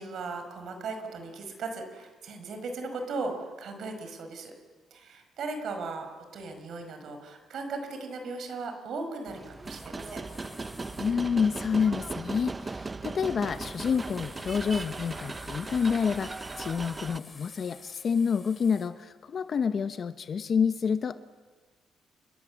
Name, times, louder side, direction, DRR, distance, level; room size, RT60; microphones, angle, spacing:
voice 1, 0.0-4.6 4.9-6.1 6.3-10.2, right 3 dB, 65° right, 6 dB, 5.3 m, -37 dB
sound 1, 9.3-17.2, right 3 dB, 25° right, 0.9 m, -38 dB
sound 2, 9.6-11.2 13.5-18.9, left 4 dB, 30° left, 4.1 m, -52 dB
voice 2, 11.0-16.3 16.6-21.2, left 6 dB, 50° left, 10 dB, 1.0 m, -28 dB
29.0 x 22.5 x 7.4 m, 1.4 s
cardioid pair, 90°, 0 cm